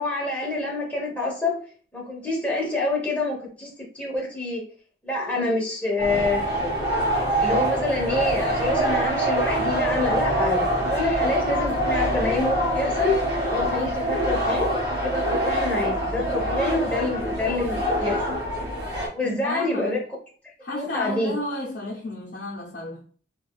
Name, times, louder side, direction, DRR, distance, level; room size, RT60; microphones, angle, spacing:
voice 1, 0.0-1.6 1.9-4.6 5.0-6.4 7.4-13.1 13.5-14.7 15.0-18.4 19.1-20.0 20.7-21.3, left 2 dB, 10° left, 1.0 m, -26 dB
sound 1, 6.0-19.1, right 1 dB, 25° right, 1.4 m, -25 dB
voice 2, 19.2-20.0 20.6-23.0, left 2 dB, 65° left, 0.7 m, -32 dB
4.1 x 2.3 x 2.4 m
head